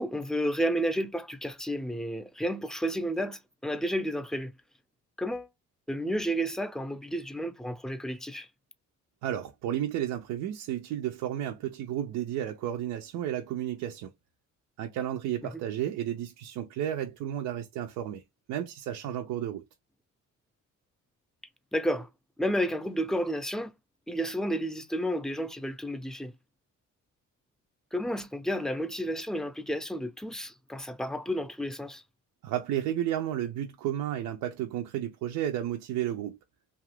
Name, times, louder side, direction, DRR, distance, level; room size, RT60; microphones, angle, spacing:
voice 1, 0.0-4.5 5.2-5.5 5.9-8.5 15.4-15.6 21.7-22.1 22.4-23.7 24.1-26.3 27.9-32.0, equal, ahead, 0.4 m, -31 dB
voice 2, 9.2-14.1 14.8-18.2 18.5-19.6 32.4-36.4, right 11 dB, 90° right, 0.5 m, -32 dB
2.8 x 2.4 x 3.1 m
cardioid pair, 90°, 30 cm